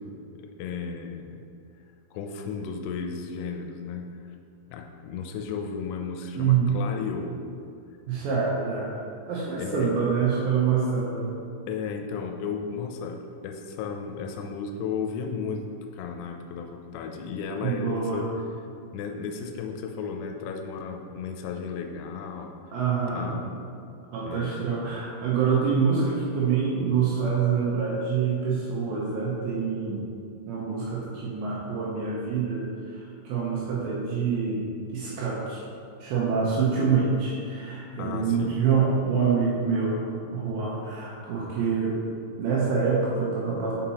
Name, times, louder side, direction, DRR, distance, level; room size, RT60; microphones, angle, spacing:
voice 1, 0.0-1.4 2.1-4.1 4.7-7.4 9.6-10.1 11.7-15.6 15.9-18.3 18.9-22.7 23.1-23.5 24.3-24.6 38.0-38.5, left 5 dB, 90° left, 3 dB, 3.3 m, -34 dB
voice 2, 6.3-6.8 8.1-9.0 9.3-11.3 17.6-18.3 22.7-23.3 24.1-30.1 30.5-34.7 34.9-35.6 36.0-42.0 42.4-43.7, right 6 dB, 80° right, -6 dB, 2.7 m, -26 dB
6.9 x 5.8 x 2.8 m, 2.5 s
omnidirectional pair, 5.9 m